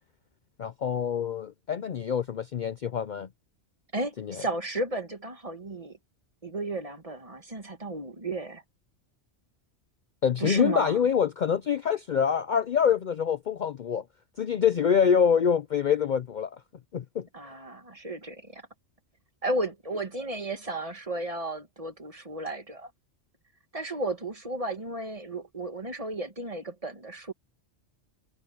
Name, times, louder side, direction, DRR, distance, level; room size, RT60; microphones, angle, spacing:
voice 1, 0.6-3.3 4.2-4.4 10.2-14.0 14.4-16.6 16.9-17.3, left 7 dB, 50° left, 0.6 m, -25 dB
voice 2, 3.9-6.0 6.4-8.6 10.4-11.0 17.3-18.6 19.4-22.9 23.7-27.3, right 2 dB, 30° right, 1.7 m, -33 dB
omnidirectional pair, 1.2 m